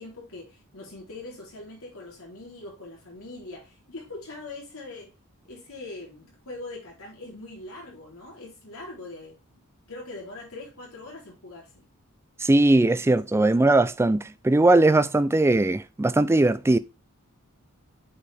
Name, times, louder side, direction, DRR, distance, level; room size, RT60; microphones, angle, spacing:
voice 1, 0.0-5.1 5.4-9.4 9.9-11.9, left 2 dB, 65° left, 3.5 m, -42 dB
voice 2, 12.4-16.8, right 2 dB, 10° right, 0.3 m, -20 dB
8.2 x 4.8 x 3.3 m
head